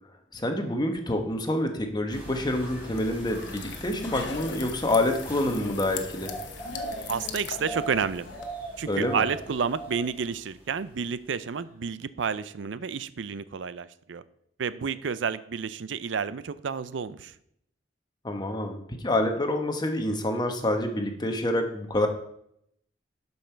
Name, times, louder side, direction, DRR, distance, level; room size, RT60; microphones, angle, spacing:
voice 1, 0.3-6.3 8.9-9.2 18.2-22.1, left 1 dB, 25° left, 5 dB, 1.1 m, -27 dB
sound 1, 2.1-11.3 11.6-11.7, right 2 dB, 10° right, 3.9 m, -41 dB
sound 2, 2.8-8.5, left 5 dB, 70° left, 0.9 m, -40 dB
voice 2, 7.1-8.3 8.8-14.2 14.6-17.3, right 6 dB, 85° right, 15 dB, 0.5 m, -30 dB
11.5 x 5.5 x 4.5 m, 0.73 s
head